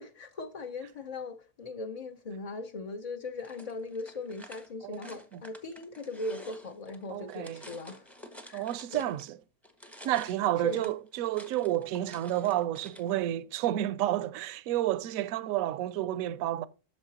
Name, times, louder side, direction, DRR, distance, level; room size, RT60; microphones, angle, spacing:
voice 1, 0.0-8.1 8.5-8.7 8.9-9.2 10.6-10.9, left 3 dB, 50° left, 0.4 m, -39 dB
sound 1, 3.4-9.3 9.6-13.2, equal, ahead, 0.5 m, -51 dB
voice 2, 7.1-7.6 8.5-9.4 10.0-16.7, right 13 dB, 70° right, 0.9 m, -30 dB
8.7 x 6.5 x 2.8 m
omnidirectional pair, 1.6 m